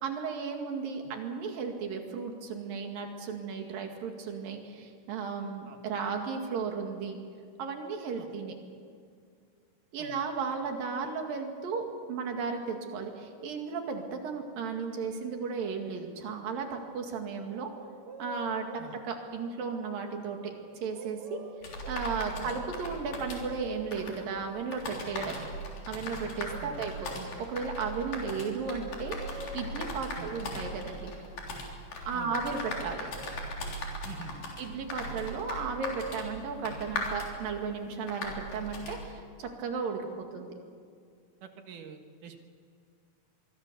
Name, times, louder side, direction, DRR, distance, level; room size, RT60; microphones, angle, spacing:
voice 1, 0.0-7.2 7.6-8.6 9.9-17.7 18.2-18.7 19.0-20.5 20.8-21.4 21.9-25.5 25.9-31.1 32.1-33.1 34.6-40.5, right 5 dB, 90° right, 3 dB, 4.0 m, -35 dB
sound 1, 17.5-19.0 20.9-22.1 23.9-25.1 26.2-26.3 26.5-27.4 28.6-30.0 32.3-33.5 35.7-36.3, right 2 dB, 50° right, 2.1 m, -47 dB
sound 2, 21.6-39.1, left 1 dB, 85° left, 5.3 m, -39 dB
voice 2, 26.6-26.9 30.2-30.3 32.1-32.4 34.0-34.6 41.4-42.4, right 7 dB, 70° right, 6 dB, 3.0 m, -46 dB
24.5 x 23.5 x 7.0 m, 2.2 s
omnidirectional pair, 3.9 m